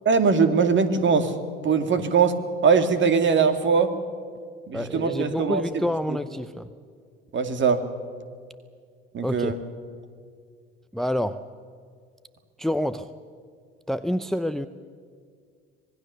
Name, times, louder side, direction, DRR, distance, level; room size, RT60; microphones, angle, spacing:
voice 1, 0.1-1.3 1.6-2.3 2.6-3.9 4.7-5.8 7.3-7.8 9.1-9.6, right 5 dB, 40° right, 8 dB, 2.4 m, -21 dB
voice 2, 4.7-6.7 9.2-9.5 10.9-11.4 12.6-13.1 13.9-14.7, left 1 dB, ahead, 13 dB, 0.7 m, -27 dB
25.5 x 20.0 x 6.9 m, 2.1 s
hypercardioid pair, 65°, 30 cm